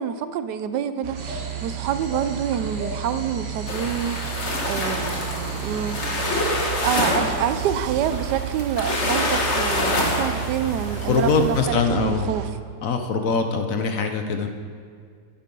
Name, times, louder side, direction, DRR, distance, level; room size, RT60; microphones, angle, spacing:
voice 1, 0.0-6.0 6.8-12.4, right 8 dB, 90° right, 11 dB, 1.2 m, -27 dB
sound 1, 1.0-12.5, right 12 dB, 70° right, 0.6 m, -32 dB
sound 2, 1.2-6.4, right 1 dB, 30° right, 1.1 m, -37 dB
sound 3, 3.7-11.5, left 2 dB, 45° left, 1.7 m, -26 dB
voice 2, 11.1-12.3 12.8-14.5, left 4 dB, 60° left, 6 dB, 1.2 m, -22 dB
11.0 x 9.8 x 5.4 m, 2.1 s
omnidirectional pair, 1.7 m